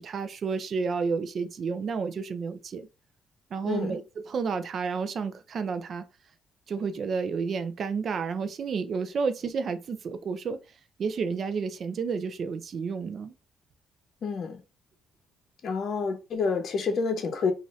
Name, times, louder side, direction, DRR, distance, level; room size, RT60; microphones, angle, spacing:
voice 1, 0.0-2.9 3.5-6.0 6.7-10.6 11.0-13.3, right 5 dB, 55° right, 0.4 m, -31 dB
voice 2, 14.2-14.6 15.6-17.5, left 5 dB, 60° left, 0.7 m, -28 dB
2.6 x 2.5 x 3.1 m
cardioid pair, 90°, 0 cm